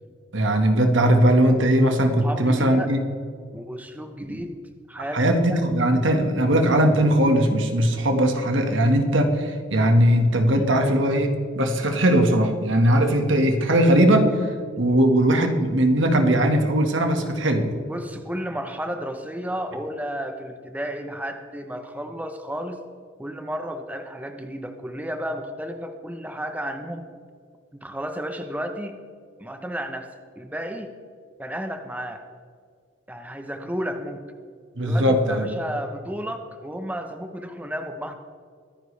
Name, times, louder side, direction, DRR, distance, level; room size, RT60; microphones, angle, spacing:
voice 1, 0.3-3.0 4.3-4.4 5.1-17.8 34.7-35.5, right 1 dB, 65° right, 5 dB, 1.7 m, -19 dB
voice 2, 2.2-2.9 3.5-4.6 4.9-5.6 10.5-10.7 17.8-22.8 23.2-27.1 27.8-29.0 29.4-30.9 31.4-32.2 33.1-34.2 34.8-38.2, equal, 5° right, 6 dB, 0.9 m, -32 dB
23.0 x 10.5 x 3.4 m, 2.1 s
head